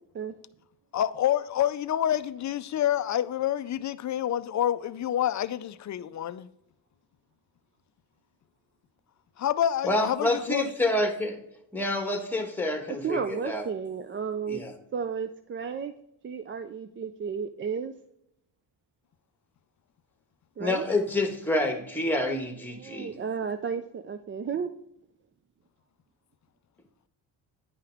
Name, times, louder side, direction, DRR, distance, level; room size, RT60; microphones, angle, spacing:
voice 1, 0.9-6.5 9.4-10.7, left 11 dB, 45° left, 0.4 m, -28 dB
voice 2, 9.8-11.4 11.7-13.6 14.5-14.7 20.6-23.1, left 1 dB, 5° left, 1.3 m, -28 dB
voice 3, 13.0-14.6 14.9-15.9 16.2-17.9 20.6-20.9 22.7-24.8, right 6 dB, 30° right, 0.4 m, -33 dB
10.0 x 5.7 x 3.4 m
cardioid pair, 120°, 43 cm